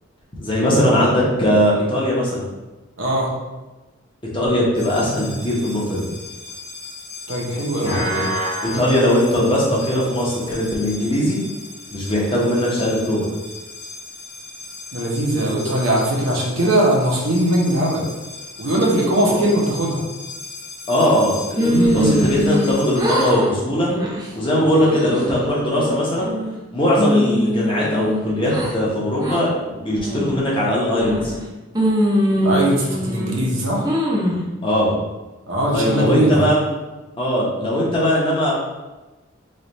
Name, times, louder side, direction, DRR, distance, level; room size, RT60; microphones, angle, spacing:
voice 1, 0.4-2.5 4.3-6.1 7.8-8.2 8.6-11.4 11.9-13.3 19.3-19.4 20.9-23.9 24.3-26.3 26.7-31.3 34.6-35.0 35.7-36.6 37.2-38.5, equal, 25° left, -5 dB, 0.8 m, -20 dB
voice 2, 3.0-3.3 7.3-8.3 14.9-18.0 18.6-20.0 21.6-22.2 32.4-33.9 35.5-36.4, right 1 dB, 65° right, -2 dB, 0.8 m, -20 dB
sound 1, 4.8-23.3, left 1 dB, 50° left, 1.0 m, -35 dB
sound 2, 21.6-22.7 23.0-23.5 23.9-24.3 24.7-25.3 25.8-26.6 27.0-28.7 29.2-29.4 29.9-30.4 31.0-31.4 31.8-33.3 33.8-34.4, equal, 20° right, 0.6 m, -21 dB
3.2 x 2.4 x 4.0 m, 1.1 s
head